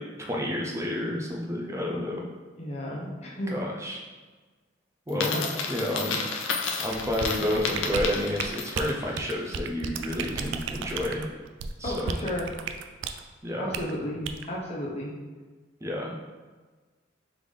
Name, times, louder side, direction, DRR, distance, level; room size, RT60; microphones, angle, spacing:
voice 1, 0.0-2.2 3.5-4.0 5.1-5.4 5.7-6.5 6.8-11.3 11.8-12.2 13.4-13.8 15.8-16.2, left 1 dB, 15° right, -1 dB, 0.6 m, -30 dB
voice 2, 2.6-3.5 5.1-5.5 11.8-12.5 13.6-15.2, left 1 dB, 35° left, -3 dB, 0.8 m, -33 dB
Coin (dropping), 5.1-9.0, left 5 dB, 80° left, 0.5 m, -31 dB
sound 1, 6.9-13.2 13.7-13.9 14.2-14.5, right 5 dB, 70° right, 0.3 m, -34 dB
3.8 x 3.5 x 3.2 m, 1.3 s
head